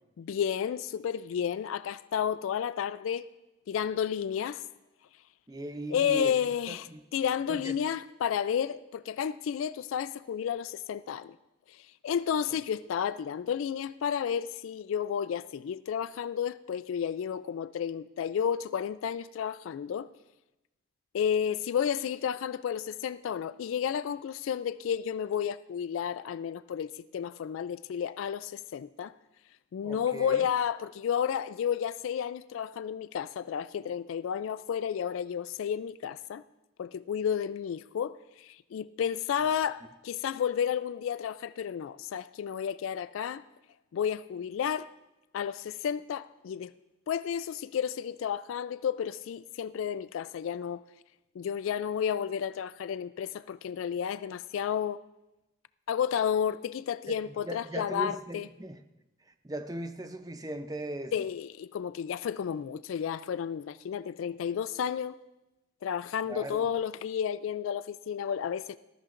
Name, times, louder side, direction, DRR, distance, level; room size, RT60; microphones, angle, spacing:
voice 1, 0.2-3.3 3.7-4.6 5.9-6.9 7.1-11.4 11.7-20.1 21.1-29.1 29.7-36.4 36.8-43.4 43.9-44.9 45.3-46.7 47.1-50.8 51.4-55.0 55.9-58.5 61.1-65.2 65.8-68.8, left 8 dB, 80° left, 0.3 m, -32 dB
voice 2, 5.5-6.3 6.7-7.0 7.5-7.8 29.8-30.5 57.1-57.2 57.5-58.8 59.3-61.3 66.3-66.7, right 1 dB, 20° right, 0.6 m, -38 dB
18.5 x 13.5 x 2.5 m
head